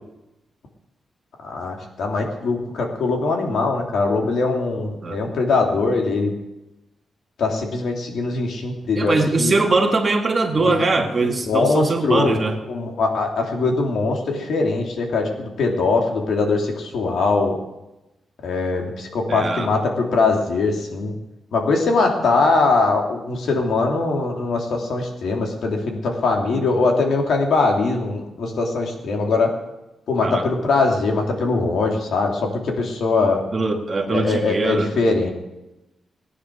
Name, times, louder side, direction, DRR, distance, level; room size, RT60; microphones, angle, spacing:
voice 1, 1.4-6.3 7.4-9.6 10.6-10.9 11.2-17.5 18.4-21.1 21.5-29.5 30.1-33.4 34.1-35.3, left 3 dB, 75° left, 1 dB, 3.2 m, -21 dB
voice 2, 9.0-12.6 19.3-19.7 30.2-30.4 33.5-35.0, right 3 dB, 30° right, 3 dB, 1.9 m, -21 dB
18.0 x 10.0 x 6.5 m, 0.96 s
wide cardioid pair, 135°, 0 cm